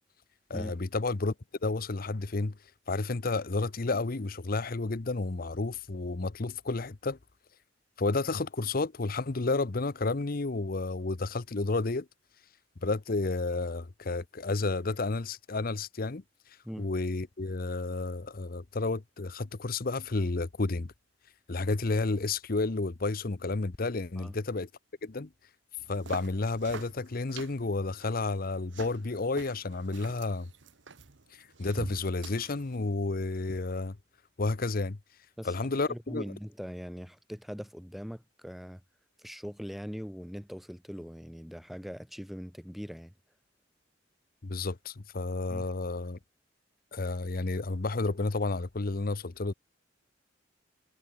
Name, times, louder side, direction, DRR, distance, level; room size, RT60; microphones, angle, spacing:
voice 1, 0.5-1.3 1.6-2.6 2.9-7.2 8.0-12.1 12.8-16.2 16.8-20.9 21.5-24.7 25.0-25.3 25.9-30.5 31.6-34.0 34.4-35.0 35.4-36.2 44.4-46.2 46.9-49.5, left 3 dB, 50° left, 0.8 m, -31 dB
sound 1, 25.8-32.8, right 3 dB, 75° right, 1.3 m, -47 dB
voice 2, 35.4-38.8 39.2-43.1 45.5-45.6, equal, ahead, 2.5 m, -41 dB
head